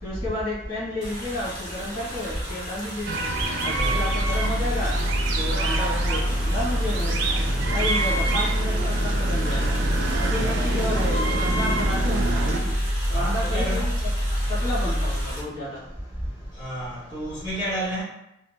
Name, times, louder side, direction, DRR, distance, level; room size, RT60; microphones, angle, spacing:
voice 1, 0.0-3.1 3.6-4.9 5.3-7.2 7.7-9.8 10.2-12.7 13.1-14.1 14.5-15.8, left 1 dB, 50° left, -9 dB, 1.4 m, -31 dB
sound 1, 1.0-15.4, equal, 40° right, 0.9 m, -35 dB
sound 2, 3.1-12.6, right 3 dB, 75° right, 0.4 m, -28 dB
sound 3, 3.8-15.2, equal, 85° left, 0.7 m, -26 dB
voice 2, 10.3-10.7 13.1-13.9 16.6-18.0, right 1 dB, 25° left, -12 dB, 1.3 m, -31 dB
2.8 x 2.1 x 2.3 m, 0.85 s
head